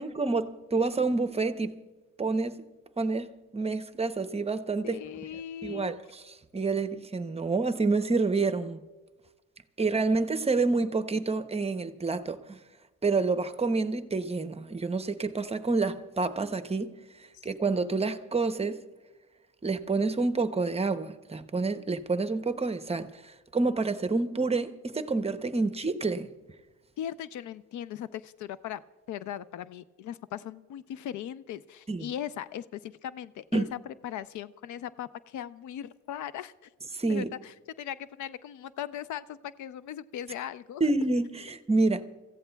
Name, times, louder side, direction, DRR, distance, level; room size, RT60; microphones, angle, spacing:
voice 1, 0.0-1.7 2.2-2.6 3.0-5.0 5.6-6.0 6.5-8.8 9.8-12.6 13.0-16.9 17.4-18.8 19.6-23.1 23.5-26.3 31.9-32.1 33.5-33.7 36.9-37.3 40.8-42.0, right 3 dB, 20° right, 0.7 m, -28 dB
voice 2, 4.8-6.0 17.3-17.4 27.0-28.8 29.1-36.7 37.1-40.8, left 10 dB, 75° left, 0.5 m, -39 dB
27.5 x 15.0 x 2.3 m
cardioid pair, 90°, 30 cm